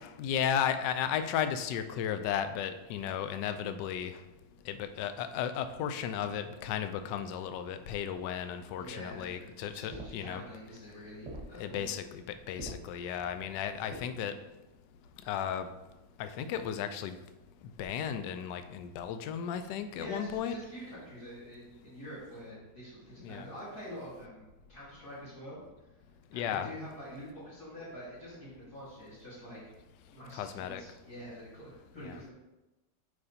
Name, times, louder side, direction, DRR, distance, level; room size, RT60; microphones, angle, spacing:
voice 1, 0.2-4.1 4.7-10.4 11.5-14.3 15.3-15.7 16.2-17.2 17.8-20.5 23.2-23.4 26.3-26.7 30.3-30.8 32.0-32.2, left 9 dB, 75° left, 9 dB, 1.1 m, -34 dB
voice 2, 8.8-11.9 19.7-25.6 26.3-29.6 30.1-32.3, equal, 50° left, -9 dB, 2.9 m, -46 dB
sound 1, 8.9-14.0, right 1 dB, 25° right, 1.0 m, -48 dB
10.5 x 4.9 x 2.8 m, 1.0 s
omnidirectional pair, 2.2 m